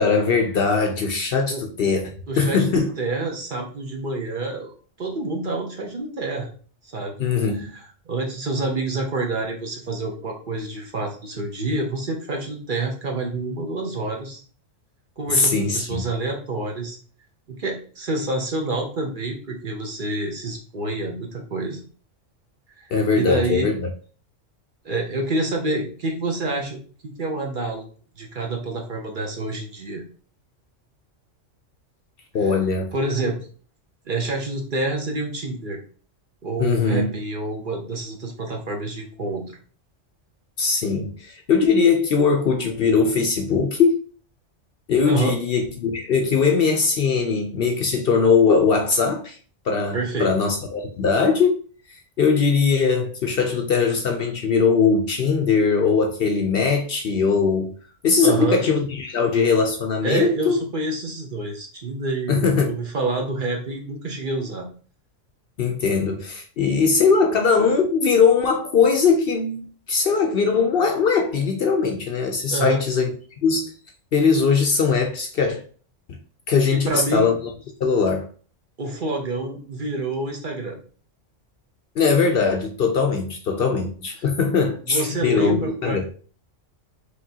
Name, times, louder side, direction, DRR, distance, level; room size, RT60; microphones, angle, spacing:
voice 1, 0.0-2.9 7.2-7.7 15.3-16.0 22.9-23.9 32.3-32.9 36.6-37.1 40.6-44.0 44.9-49.4 49.7-51.6 51.9-57.7 58.0-60.6 62.3-62.7 65.6-73.1 73.4-73.7 74.1-75.6 76.1-76.2 76.5-77.3 77.8-78.3 82.0-86.1, left 5 dB, 60° left, 0.7 m, -20 dB
voice 2, 2.3-2.7 3.0-6.5 6.8-7.1 7.5-14.4 15.2-17.0 17.5-21.8 22.8-22.9 23.1-23.7 24.8-26.8 27.0-27.9 28.2-30.0 32.4-32.6 32.9-33.4 34.1-35.8 36.4-39.4 45.0-45.4 49.9-50.4 58.2-58.6 60.0-64.7 72.5-72.8 76.7-77.3 78.8-80.8 84.8-86.1, right 2 dB, 45° right, 0.9 m, -27 dB
5.0 x 3.2 x 2.8 m
omnidirectional pair, 1.3 m